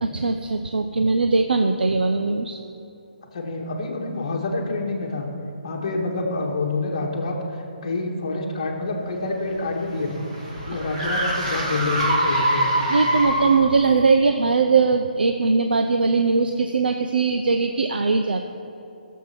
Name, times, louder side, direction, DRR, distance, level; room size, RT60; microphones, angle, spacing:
voice 1, 0.0-2.6 12.9-18.5, right 4 dB, 75° right, 5 dB, 0.7 m, -20 dB
voice 2, 3.3-5.3 5.6-7.4 7.8-10.2 10.6-13.3, left 3 dB, 30° left, 0 dB, 1.5 m, -27 dB
sound 1, 9.2-13.7, right 1 dB, 30° right, 2.0 m, -24 dB
14.0 x 7.4 x 5.9 m, 2.8 s
hypercardioid pair, 180°, 5 cm